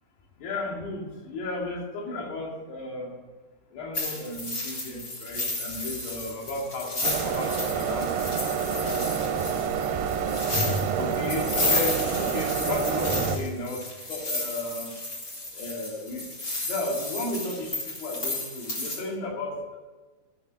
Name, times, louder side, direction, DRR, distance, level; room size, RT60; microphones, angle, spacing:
voice 1, 0.4-3.1 3.7-8.1 8.7-9.3 11.0-14.9 15.5-16.3 16.7-19.8, left 2 dB, 80° left, -2 dB, 4.4 m, -34 dB
sound 1, 3.9-19.0, left 2 dB, 30° left, 2.5 m, -32 dB
sound 2, 7.0-13.4, right 7 dB, 85° right, 2.8 m, -28 dB
13.0 x 6.3 x 8.4 m, 1.3 s
omnidirectional pair, 4.7 m